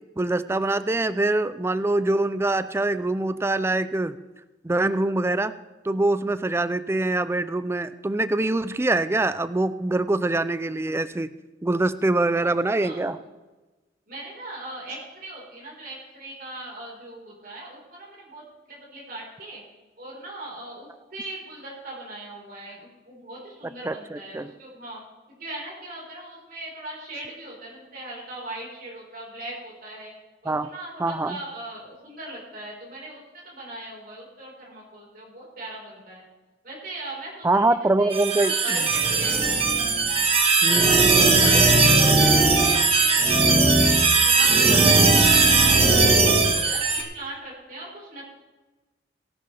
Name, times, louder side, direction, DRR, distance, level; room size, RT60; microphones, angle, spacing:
voice 1, 0.2-4.2 4.6-5.5 5.8-11.3 11.6-13.2 23.8-24.5 30.4-30.7 31.0-31.4 37.4-38.8 40.6-41.1, right 2 dB, 15° right, 14 dB, 0.4 m, -24 dB
voice 2, 12.4-13.3 14.1-19.6 20.0-25.0 25.3-30.1 30.4-36.2 36.6-37.6 38.0-39.4 40.8-44.8 45.3-48.2, right 2 dB, 55° right, -3 dB, 4.5 m, -39 dB
sound 1, 38.1-47.0, right 3 dB, 35° right, 1.4 m, -18 dB
18.0 x 11.5 x 3.4 m, 1.2 s
head